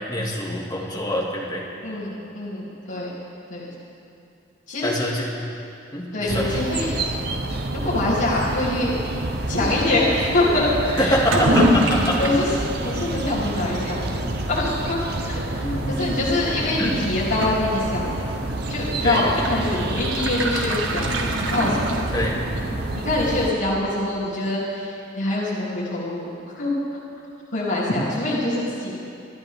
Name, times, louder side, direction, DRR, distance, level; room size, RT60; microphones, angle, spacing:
voice 1, 0.0-1.6 4.8-5.2 5.9-6.6 11.0-12.2 15.6-16.2 16.8-17.0 19.0-19.5 22.1-22.4, left 1 dB, 20° left, -4 dB, 2.2 m, -25 dB
voice 2, 1.8-3.1 3.5-3.7 4.7-4.9 6.1-6.9 7.7-8.9 9.5-11.6 12.2-12.5 12.8-14.2 14.5-18.2 18.7-21.8 22.9-27.0 27.5-28.9, left 2 dB, 80° left, -10 dB, 3.1 m, -24 dB
sound 1, 6.3-23.5, right 2 dB, 55° right, 0.9 m, -28 dB
Toilet flush / Liquid, 11.0-22.6, right 1 dB, 90° right, 1.6 m, -28 dB
27.0 x 11.5 x 3.7 m, 2.7 s
head